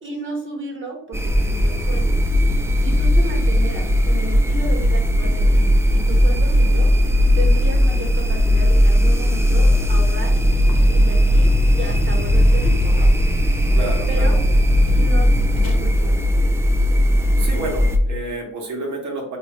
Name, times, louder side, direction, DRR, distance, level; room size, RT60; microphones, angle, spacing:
voice 1, 0.0-2.1 2.8-6.9 7.4-10.4 10.9-13.1 14.1-14.4 14.9-16.2, right 2 dB, 40° right, 1 dB, 1.2 m, -33 dB
sound 1, 1.1-18.0, equal, 10° right, 0.4 m, -17 dB
Vehicle, 10.3-15.8, left 2 dB, 40° left, 1.0 m, -30 dB
voice 2, 13.7-14.3 14.9-15.0 17.3-19.4, right 2 dB, 60° right, 0 dB, 1.3 m, -29 dB
3.6 x 2.8 x 3.1 m, 0.70 s
cardioid pair, 85°, 32 cm